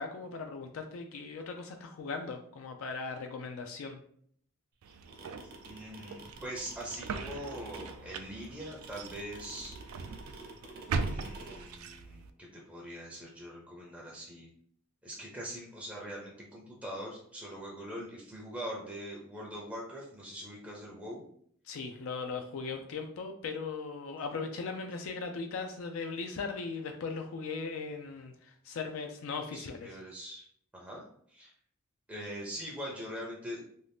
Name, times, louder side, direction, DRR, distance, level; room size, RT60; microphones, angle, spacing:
voice 1, 0.0-4.0 21.7-30.0, left 4 dB, 70° left, 4 dB, 0.3 m, -38 dB
sound 1, 4.8-12.3, right 4 dB, 85° right, 0.3 m, -40 dB
sound 2, 4.9-11.6, right 4 dB, 50° right, 0.6 m, -48 dB
voice 2, 5.6-9.8 10.3-10.4 10.9-14.5 15.0-21.2 29.5-30.4 30.7-31.5 32.1-33.6, equal, 5° right, -4 dB, 0.5 m, -42 dB
2.6 x 2.3 x 3.3 m, 0.63 s
head